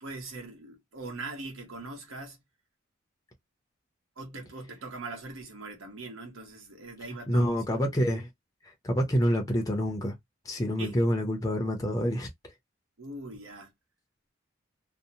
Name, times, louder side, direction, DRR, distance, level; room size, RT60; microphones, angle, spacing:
voice 1, 0.0-2.4 4.2-7.6 10.8-11.0 13.0-13.7, right 3 dB, 85° right, 0.9 m, -41 dB
voice 2, 7.3-8.3 8.6-10.1 10.5-12.3, equal, 15° left, 0.5 m, -27 dB
2.6 x 2.0 x 2.6 m
head